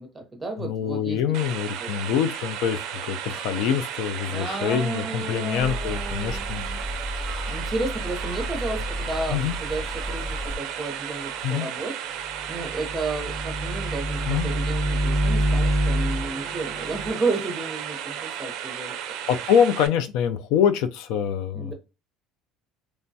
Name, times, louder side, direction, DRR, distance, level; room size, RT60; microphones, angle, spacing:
voice 1, 0.0-1.2 1.8-1.9 4.3-6.8 7.5-12.0 12.5-19.0 21.5-21.7, right 3 dB, 10° right, 0.7 m, -32 dB
voice 2, 0.6-6.6 9.3-9.6 11.4-11.7 14.3-14.5 19.3-21.7, left 8 dB, 75° left, 0.3 m, -25 dB
sound 1, 1.3-19.9, right 9 dB, 65° right, 0.4 m, -34 dB
sound 2, 5.6-10.6, left 1 dB, 35° left, 0.8 m, -33 dB
sound 3, 12.3-17.1, right 1 dB, 55° left, 1.2 m, -26 dB
3.1 x 2.2 x 2.6 m
cardioid pair, 145°, 0 cm